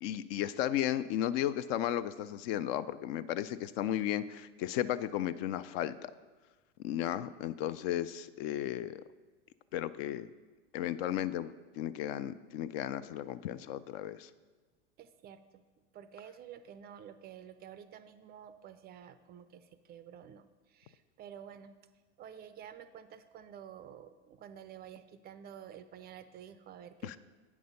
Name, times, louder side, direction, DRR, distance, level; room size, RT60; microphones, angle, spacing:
voice 1, 0.0-6.1 6.8-9.0 9.7-10.3 10.7-14.3 27.0-27.2, left 11 dB, 55° left, 14 dB, 0.5 m, -34 dB
voice 2, 15.0-15.6 15.9-21.8 22.2-27.2, right 9 dB, 30° right, 12 dB, 0.4 m, -50 dB
8.6 x 6.1 x 5.4 m, 1.3 s
hypercardioid pair, 110°, 36 cm